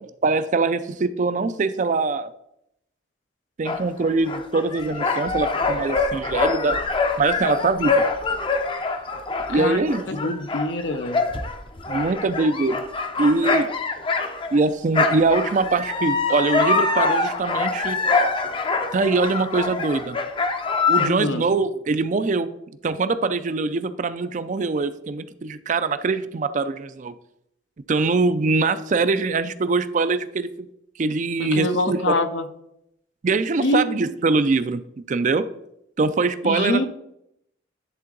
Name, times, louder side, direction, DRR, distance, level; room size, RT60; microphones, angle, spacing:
voice 1, 0.2-2.3 3.6-6.8 7.2-8.0 9.5-10.3 11.9-12.8 13.2-13.7 14.5-18.0 18.9-20.2 20.9-22.5 22.8-27.1 27.9-30.7 31.0-32.2 33.2-34.8 35.1-35.4 36.0-36.9, right 3 dB, 40° right, 13 dB, 0.4 m, -23 dB
sound 1, 3.7-14.7 14.9-21.1, left 3 dB, 25° left, 0.6 m, -24 dB
voice 2, 9.5-9.8 10.1-11.3 21.0-21.4 31.4-32.5 33.6-33.9 36.4-36.9, left 2 dB, 80° left, 8 dB, 0.8 m, -24 dB
10.5 x 3.7 x 3.9 m, 0.77 s
head